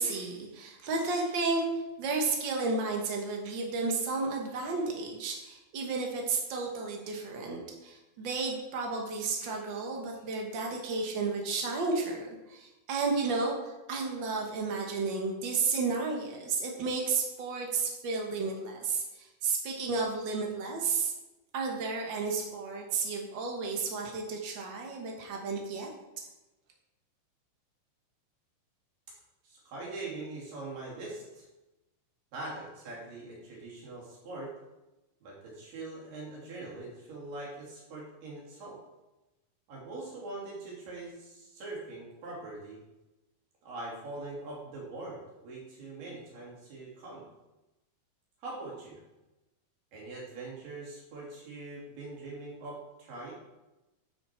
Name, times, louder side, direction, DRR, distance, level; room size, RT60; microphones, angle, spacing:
voice 1, 0.0-21.1 21.5-25.9, right 4 dB, 90° right, 1 dB, 1.0 m, -32 dB
voice 2, 29.4-31.5 32.3-34.5 35.2-38.8 39.7-42.8 43.6-47.2 48.4-49.0 49.9-53.3, right 2 dB, 65° right, -4 dB, 4.3 m, -42 dB
9.9 x 6.4 x 4.4 m, 1.0 s
omnidirectional pair, 4.2 m